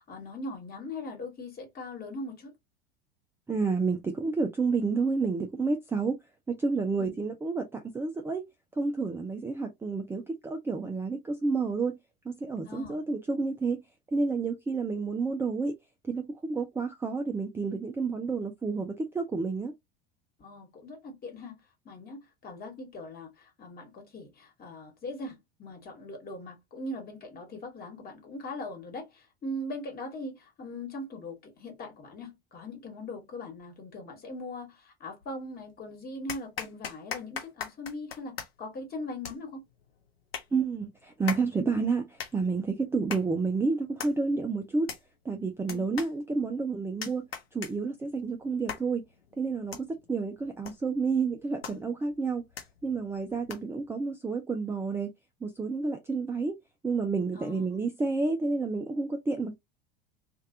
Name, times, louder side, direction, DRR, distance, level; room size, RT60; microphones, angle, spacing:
voice 1, 0.0-2.5 7.0-7.2 12.6-13.0 20.4-21.6 21.8-39.6 45.7-45.9 57.3-57.8, left 2 dB, 30° left, 1.5 m, -40 dB
voice 2, 3.5-6.2 6.5-8.4 8.8-12.0 12.3-13.8 14.1-15.8 16.0-19.7 40.5-44.9 45.2-49.0 49.4-52.4 52.8-55.1 55.4-56.5 56.8-59.6, right 4 dB, 10° right, 0.4 m, -30 dB
sound 1, 35.2-35.8 36.3-53.9, left 7 dB, 80° left, 0.9 m, -43 dB
3.2 x 2.5 x 2.6 m
figure-of-eight pair, 75°, 30 cm